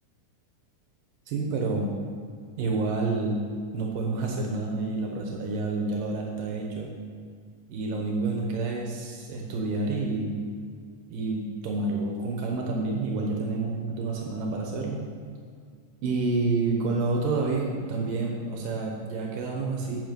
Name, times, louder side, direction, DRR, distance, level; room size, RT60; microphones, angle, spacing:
voice 1, 1.3-1.9 2.6-3.4 3.7-6.9 7.7-10.4 11.1-15.0 16.0-20.0, right 3 dB, 80° right, 0 dB, 2.8 m, -29 dB
15.5 x 6.0 x 5.3 m, 2.2 s
omnidirectional pair, 3.8 m